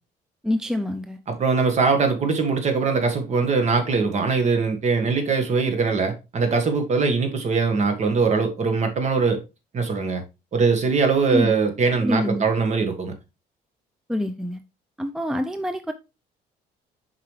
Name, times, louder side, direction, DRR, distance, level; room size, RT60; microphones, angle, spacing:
voice 1, 0.4-1.2 11.3-11.5 12.0-12.5 14.1-14.6 15.0-15.9, left 1 dB, 5° right, 0.5 m, -26 dB
voice 2, 1.3-9.4 9.7-10.2 10.5-13.1, right 4 dB, 40° right, 1.6 m, -22 dB
7.2 x 4.8 x 3.2 m
cardioid pair, 110°, 17 cm